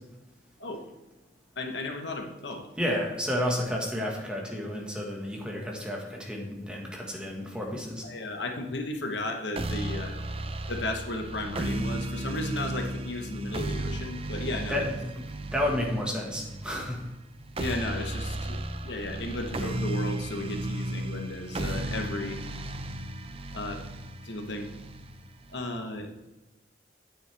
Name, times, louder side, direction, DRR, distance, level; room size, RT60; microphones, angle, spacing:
voice 1, 1.6-2.7 8.0-10.2 10.7-14.8 17.6-22.4 23.5-23.8 24.2-24.7 25.5-26.1, left 2 dB, 65° left, 4 dB, 1.1 m, -34 dB
voice 2, 2.8-8.0 14.7-15.1 15.5-17.0, left 1 dB, 5° right, -1 dB, 1.6 m, -31 dB
sound 1, 9.6-25.6, right 1 dB, 30° right, 0.6 m, -35 dB
9.9 x 9.2 x 3.4 m, 1.0 s
head